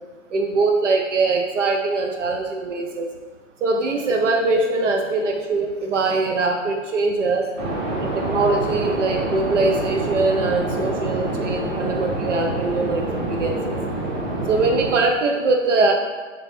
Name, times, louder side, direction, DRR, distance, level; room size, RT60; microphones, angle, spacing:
voice 1, 0.3-3.1 3.6-7.5 8.0-13.8 14.5-15.9, right 3 dB, 70° right, 2 dB, 0.6 m, -22 dB
sound 1, 7.6-15.0, right 2 dB, 30° right, 1.0 m, -26 dB
3.6 x 3.3 x 3.3 m, 1.4 s
figure-of-eight pair, 120°, 38 cm